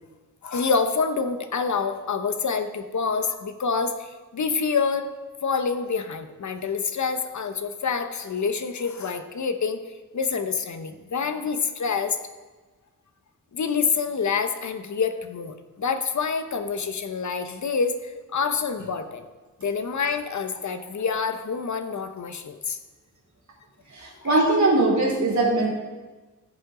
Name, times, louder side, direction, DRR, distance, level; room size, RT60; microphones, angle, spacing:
voice 1, 0.4-5.1 5.4-9.8 10.1-12.2 13.5-19.3 19.6-22.8 24.0-24.5, left 5 dB, 60° left, 8 dB, 0.9 m, -27 dB
voice 2, 23.9-25.7, right 2 dB, 55° right, -4 dB, 3.4 m, -21 dB
14.5 x 7.8 x 3.8 m, 1.3 s
wide cardioid pair, 120°, 33 cm